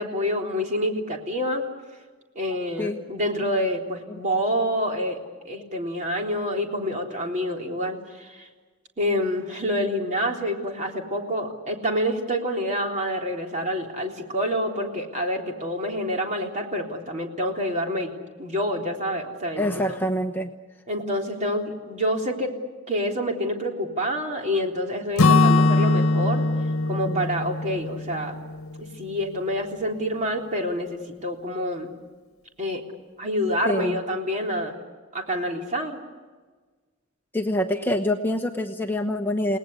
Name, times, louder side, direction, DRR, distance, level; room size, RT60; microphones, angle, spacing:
voice 1, 0.0-1.6 2.4-5.2 5.4-8.5 9.0-19.6 20.9-22.5 22.9-26.4 26.9-28.4 29.0-31.9 32.6-32.8 33.2-34.7 35.1-36.0, equal, 35° right, 1 dB, 3.6 m, -27 dB
voice 2, 19.6-20.5 27.1-27.2 33.6-34.0 37.3-39.6, left 1 dB, 10° left, 3 dB, 1.0 m, -26 dB
Acoustic guitar / Strum, 25.2-29.1, left 2 dB, 85° left, 1.0 m, -21 dB
29.5 x 19.0 x 8.3 m, 1.4 s
head